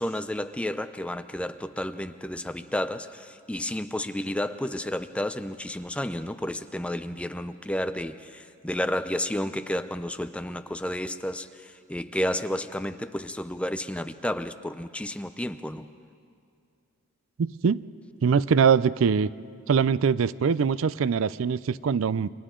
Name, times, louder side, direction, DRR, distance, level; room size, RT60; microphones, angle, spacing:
voice 1, 0.0-15.9, left 1 dB, 5° left, 10 dB, 0.5 m, -31 dB
voice 2, 17.4-17.8 18.2-19.3 19.7-22.3, right 6 dB, 70° right, 18 dB, 0.4 m, -23 dB
29.0 x 24.5 x 3.8 m, 2.3 s
head